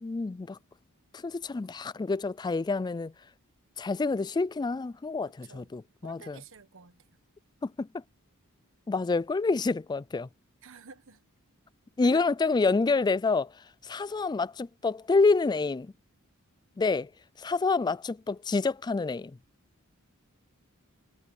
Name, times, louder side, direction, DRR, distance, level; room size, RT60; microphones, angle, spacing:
voice 1, 0.0-0.6 1.1-3.1 3.8-6.4 7.6-7.9 8.9-10.3 12.0-13.5 13.8-15.9 16.8-17.1 17.4-19.4, left 3 dB, 20° left, 0.3 m, -27 dB
voice 2, 6.0-7.1 10.6-11.2 12.0-12.5, right 5 dB, 65° right, 1.5 m, -50 dB
head